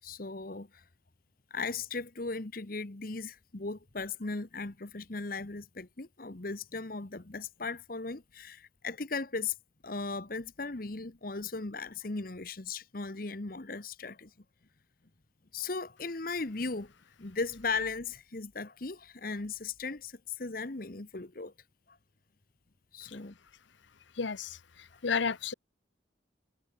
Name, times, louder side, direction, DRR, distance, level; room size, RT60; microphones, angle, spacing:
voice 1, 0.0-0.8 1.5-9.5 9.8-14.3 15.5-16.9 17.2-21.5 21.9-22.0 22.9-23.3 24.9-25.0, left 4 dB, 50° left, 1.1 m, -37 dB
voice 2, 24.2-25.5, left 5 dB, 75° left, 0.8 m, -33 dB
head